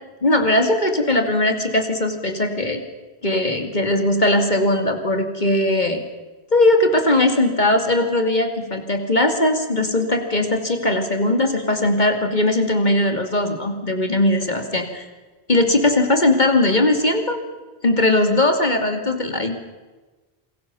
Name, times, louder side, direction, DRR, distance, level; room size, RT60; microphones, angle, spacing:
voice 1, 0.2-2.8 3.2-6.0 6.5-15.0 15.5-17.4 17.8-19.6, left 1 dB, 45° left, 5 dB, 2.8 m, -19 dB
28.0 x 21.5 x 7.0 m, 1.2 s
omnidirectional pair, 1.1 m